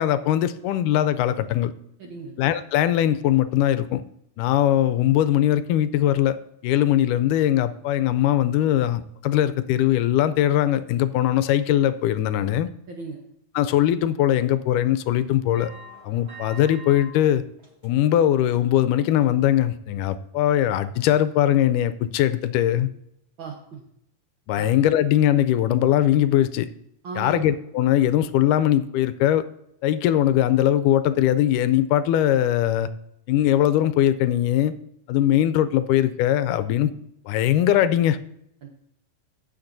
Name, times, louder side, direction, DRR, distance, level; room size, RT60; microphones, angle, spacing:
voice 1, 0.0-1.7 2.4-4.0 4.4-6.4 6.6-12.7 13.6-15.7 16.0-17.4 17.8-22.9 24.5-26.7 27.2-29.4 29.8-32.9 33.3-34.7 35.1-36.9 37.3-38.2, left 12 dB, 85° left, 13 dB, 2.1 m, -21 dB
voice 2, 2.0-2.4 12.9-13.2 23.4-23.8 24.5-24.7 27.0-27.4 38.6-38.7, right 4 dB, 75° right, 1 dB, 1.1 m, -36 dB
sound 1, 15.5-17.1 17.5-18.1 18.5-18.7 19.2-19.3, right 1 dB, 35° right, 1.0 m, -44 dB
15.5 x 6.7 x 2.6 m, 0.76 s
omnidirectional pair, 3.6 m